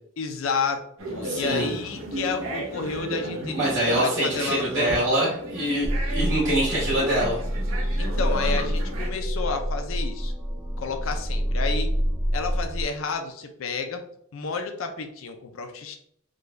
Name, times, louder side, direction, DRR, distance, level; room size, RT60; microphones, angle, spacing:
voice 1, 0.2-5.0 8.0-10.3 10.8-11.9 12.3-14.1 14.3-16.0, left 5 dB, 75° left, 5 dB, 0.5 m, -31 dB
sound 1, 1.0-9.1, right 1 dB, 85° right, 0.8 m, -34 dB
voice 2, 1.2-1.7 3.5-7.4, right 1 dB, 55° right, -10 dB, 1.4 m, -24 dB
sound 2, 5.8-12.8, equal, 10° right, 0.4 m, -27 dB
3.8 x 2.3 x 3.2 m, 0.66 s
head